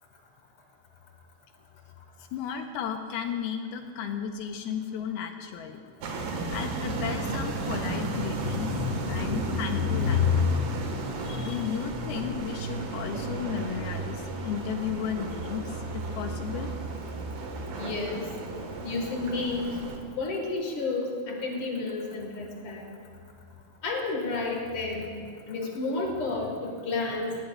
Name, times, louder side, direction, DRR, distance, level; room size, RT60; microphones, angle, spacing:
voice 1, 2.3-5.8 6.5-8.8 9.1-10.3 11.2-16.7, left 8 dB, 80° left, 5 dB, 2.4 m, -34 dB
sound 1, 6.0-20.0, right 2 dB, 60° right, 2.6 m, -34 dB
voice 2, 8.4-9.6 10.0-10.7 11.0-11.6 17.8-18.3 18.8-19.8 20.2-22.9 23.8-25.1 25.5-27.3, left 4 dB, 60° left, 1 dB, 1.5 m, -30 dB
19.0 x 17.0 x 2.3 m, 2.4 s
omnidirectional pair, 4.8 m